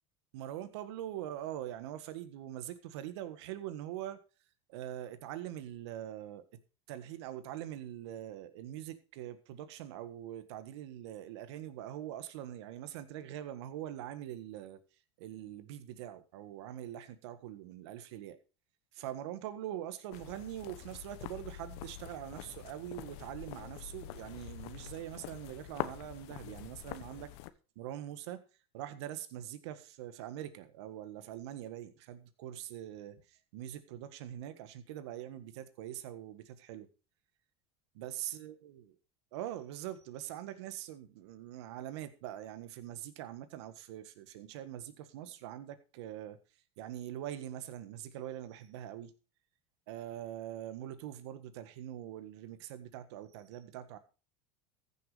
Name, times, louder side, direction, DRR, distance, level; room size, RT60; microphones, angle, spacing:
voice 1, 0.3-4.2 4.7-6.4 6.9-14.8 15.2-18.4 18.9-27.3 27.7-28.4 28.7-36.9 37.9-38.8 39.3-46.4 46.8-49.1 49.9-54.0, right 12 dB, 75° right, 1.6 m, -43 dB
sound 1, 20.1-27.5, left 14 dB, 75° left, 1.1 m, -45 dB
15.0 x 7.2 x 5.0 m
supercardioid pair, 105°, 14 cm